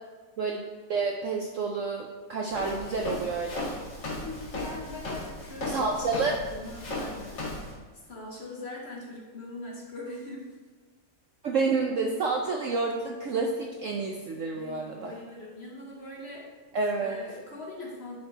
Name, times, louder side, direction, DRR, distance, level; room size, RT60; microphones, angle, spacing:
voice 1, 0.9-3.7 5.6-6.3 11.4-15.1 16.7-17.2, right 4 dB, 65° right, 1 dB, 0.8 m, -29 dB
Walk footsteps, 2.5-7.7, left 1 dB, 85° left, 2.5 m, -36 dB
voice 2, 4.1-10.5 14.5-16.5 17.0-18.2, left 2 dB, 45° left, -1 dB, 1.0 m, -42 dB
10.5 x 4.1 x 4.0 m, 1.3 s
omnidirectional pair, 1.9 m